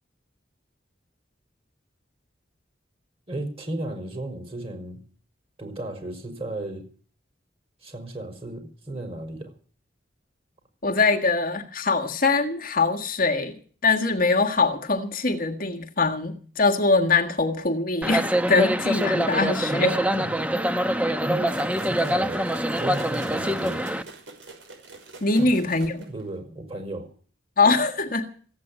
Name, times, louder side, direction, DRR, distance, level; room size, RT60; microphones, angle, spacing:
voice 1, 3.3-5.0 5.6-6.9 7.8-9.5 19.7-20.4 21.2-22.5 22.8-23.9 25.4-25.5 26.1-27.1, right 1 dB, 30° right, 4.7 m, -34 dB
voice 2, 10.8-20.0 25.2-26.0 27.6-28.3, left 3 dB, 50° left, 1.6 m, -23 dB
sound 1, 18.0-24.0, equal, 5° right, 0.8 m, -25 dB
sound 2, 21.5-26.3, right 3 dB, 75° right, 6.0 m, -45 dB
15.5 x 9.0 x 9.9 m
head